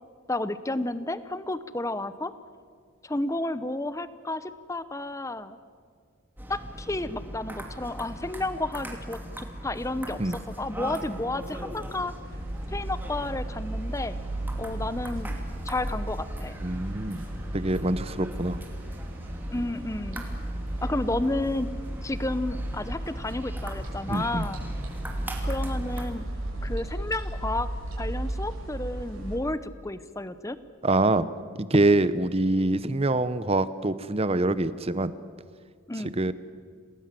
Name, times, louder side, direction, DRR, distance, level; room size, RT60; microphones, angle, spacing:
voice 1, 0.3-2.3 3.0-5.6 6.5-12.1 12.7-14.2 14.6-15.4 15.6-16.6 19.5-20.3 20.8-21.7 22.0-24.6 25.4-26.2 26.6-27.7 28.0-30.6 35.9-36.1, left 2 dB, 15° left, 13 dB, 0.8 m, -31 dB
sound 1, 6.4-26.1, right 1 dB, 10° right, 2.7 m, -40 dB
sound 2, 12.2-29.4, right 1 dB, 60° right, 6.3 m, -34 dB
voice 2, 16.6-17.2 17.5-18.6 24.1-24.5 30.8-31.3 31.6-35.1 36.2-36.3, right 2 dB, 25° right, 14 dB, 0.8 m, -25 dB
28.0 x 19.0 x 7.7 m, 2.1 s
head